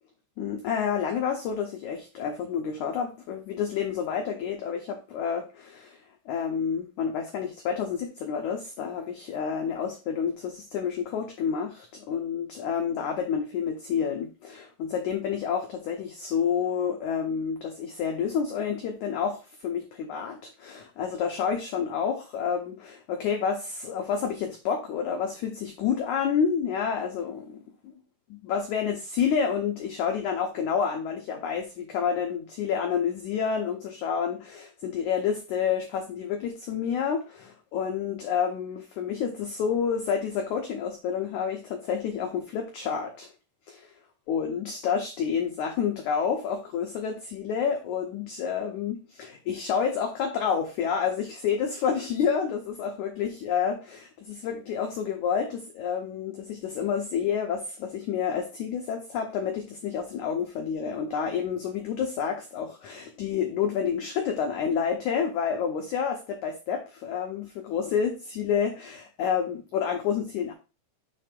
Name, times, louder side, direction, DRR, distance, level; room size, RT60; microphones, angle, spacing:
voice 1, 0.4-6.0 6.3-27.6 27.8-27.9 28.3-43.3 43.7-43.9 44.3-70.5, left 7 dB, 85° left, 3 dB, 1.7 m, -29 dB
6.8 x 3.3 x 5.1 m, 0.31 s
omnidirectional pair, 4.6 m